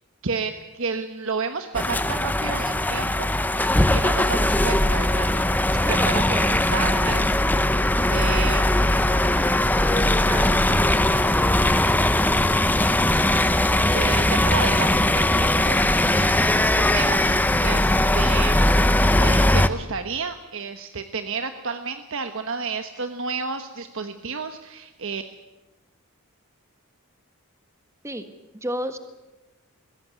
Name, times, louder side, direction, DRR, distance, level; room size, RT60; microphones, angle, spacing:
voice 1, 0.2-3.3 3.6-5.3 5.8-7.4 8.1-8.8 13.9-18.7 19.2-25.2, right 5 dB, 65° right, 7 dB, 1.2 m, -31 dB
sound 1, 1.7-19.7, left 1 dB, 10° left, 0.8 m, -20 dB
voice 2, 5.8-6.9 10.3-10.9 28.0-28.2 28.6-29.0, right 1 dB, 15° right, 8 dB, 1.5 m, -32 dB
22.5 x 16.5 x 9.7 m, 1.1 s
head